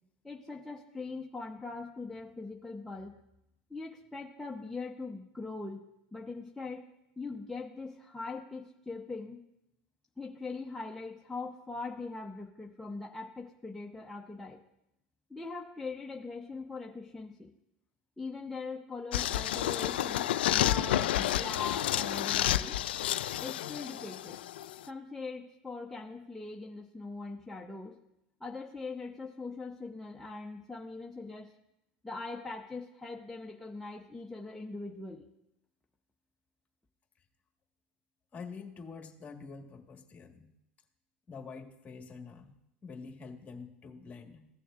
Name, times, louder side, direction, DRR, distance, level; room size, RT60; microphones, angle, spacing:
voice 1, 0.2-3.2 3.7-6.8 7.2-9.5 10.2-14.6 15.3-17.5 18.2-20.3 20.5-22.8 23.4-24.4 24.9-28.0 28.4-31.5 32.0-35.3, left 3 dB, 5° left, -1 dB, 0.8 m, -41 dB
sound 1, 19.1-24.8, left 12 dB, 85° left, 0.3 m, -30 dB
voice 2, 38.3-40.5 41.3-44.5, left 5 dB, 25° left, 2 dB, 1.6 m, -46 dB
16.0 x 6.8 x 2.5 m, 0.84 s
hypercardioid pair, 95°, 5 cm